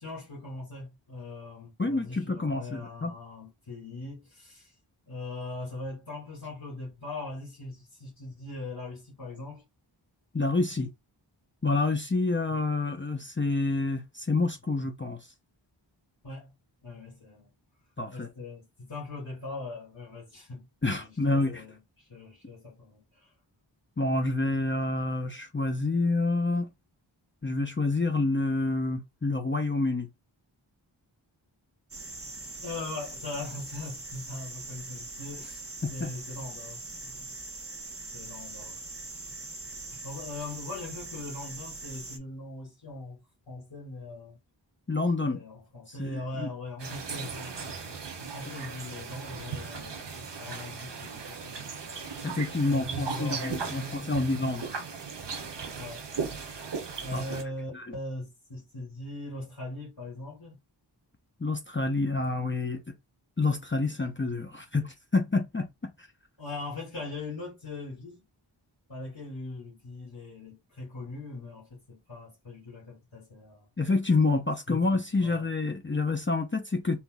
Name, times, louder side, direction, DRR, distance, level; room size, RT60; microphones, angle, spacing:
voice 1, 0.0-4.7 5.1-9.6 12.5-12.6 16.2-16.5 16.8-17.5 18.1-20.7 20.9-23.3 32.6-37.4 38.1-38.8 39.3-39.4 39.9-44.4 45.2-51.8 52.6-54.5 54.8-54.9 55.8-56.1 56.4-56.6 57.0-60.6 66.4-68.3 68.9-73.7 74.7-75.5, left 2 dB, 75° left, 2.3 m, -41 dB
voice 2, 1.8-3.1 10.3-10.9 11.6-15.3 18.0-18.3 20.8-21.6 24.0-26.7 27.4-30.1 35.8-36.1 44.9-45.4 46.0-46.5 52.2-54.8 57.1-57.2 57.7-57.9 61.4-62.8 63.4-66.1 73.8-77.0, left 3 dB, 25° left, 0.8 m, -28 dB
sound 1, 31.9-42.2, right 2 dB, 30° right, 1.1 m, -42 dB
sound 2, 46.8-57.4, right 5 dB, 60° right, 0.9 m, -37 dB
4.1 x 3.9 x 2.4 m
wide cardioid pair, 40°, 46 cm